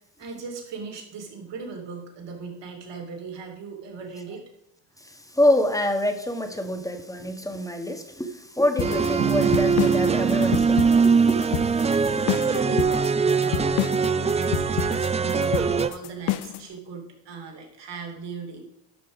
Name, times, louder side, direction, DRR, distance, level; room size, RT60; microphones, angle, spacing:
voice 1, 0.2-4.4 12.3-18.6, right 4 dB, 55° right, 2 dB, 2.9 m, -38 dB
voice 2, 5.0-11.6 11.9-12.2, left 1 dB, 5° left, 6 dB, 1.5 m, -26 dB
sound 1, 8.8-16.7, left 15 dB, 55° left, 0.6 m, -29 dB
sound 2, 8.8-15.9, right 5 dB, 15° right, 0.4 m, -22 dB
Bass guitar, 9.2-12.7, right 12 dB, 85° right, 0.7 m, -31 dB
12.0 x 5.6 x 4.9 m, 0.79 s
hypercardioid pair, 60°, 50 cm